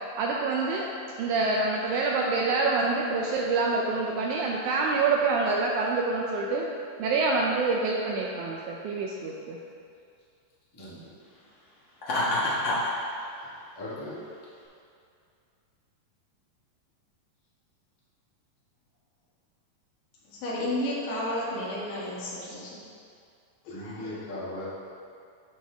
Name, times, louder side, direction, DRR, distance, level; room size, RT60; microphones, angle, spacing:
voice 1, 0.2-0.9 1.2-6.7 7.0-9.6, right 3 dB, 80° right, -1 dB, 1.8 m, -26 dB
voice 2, 10.7-11.1 12.4-12.6 13.7-14.2 23.7-24.7, left 1 dB, 20° left, -9 dB, 0.6 m, -38 dB
Laughter, 12.0-12.9, left 1 dB, 50° left, 1.5 m, -26 dB
voice 3, 20.3-22.8 23.6-24.2, left 1 dB, 90° left, -6 dB, 3.3 m, -32 dB
13.0 x 4.4 x 3.4 m, 2.4 s
omnidirectional pair, 4.0 m